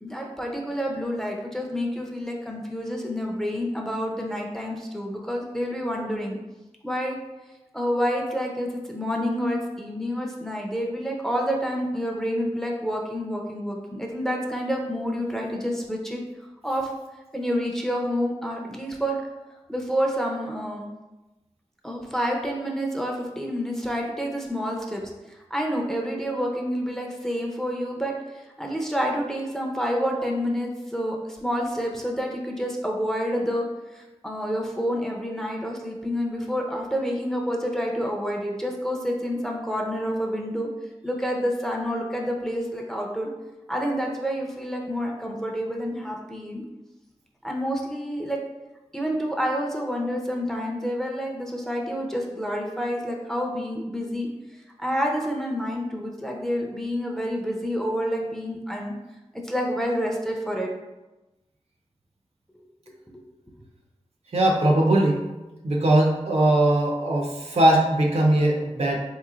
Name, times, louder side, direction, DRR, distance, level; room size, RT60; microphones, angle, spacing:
voice 1, 0.0-6.4 6.8-7.2 7.7-16.2 16.6-16.9 17.3-19.2 19.7-20.9 21.8-33.7 33.9-40.7 41.0-43.3 43.7-46.6 47.4-48.4 48.9-54.3 54.8-58.9 59.4-60.7 63.1-63.2, equal, 5° left, 0 dB, 0.5 m, -28 dB
voice 2, 64.3-65.2 65.6-69.0, right 1 dB, 65° right, -1 dB, 0.6 m, -20 dB
3.9 x 3.0 x 2.4 m, 1.1 s
wide cardioid pair, 70°, 12 cm